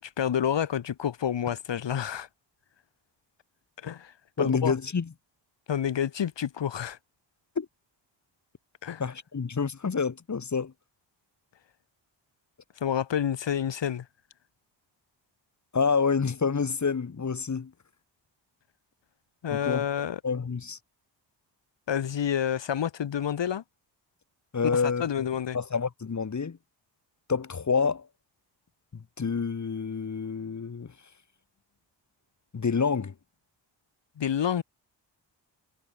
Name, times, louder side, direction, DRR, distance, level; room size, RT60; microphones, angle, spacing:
voice 1, 0.0-2.3 3.8-4.8 5.7-7.0 8.8-9.0 12.8-14.1 19.4-20.2 21.9-23.6 24.6-25.6 34.2-34.6, left 9 dB, 70° left, 5.2 m, -29 dB
voice 2, 4.4-5.1 7.6-7.7 9.0-10.7 15.7-17.7 19.5-20.8 24.5-25.3 25.5-26.6 27.3-28.1 28.9-30.9 32.5-33.1, left 5 dB, 40° left, 3.7 m, -28 dB
cardioid pair, 115°, 45 cm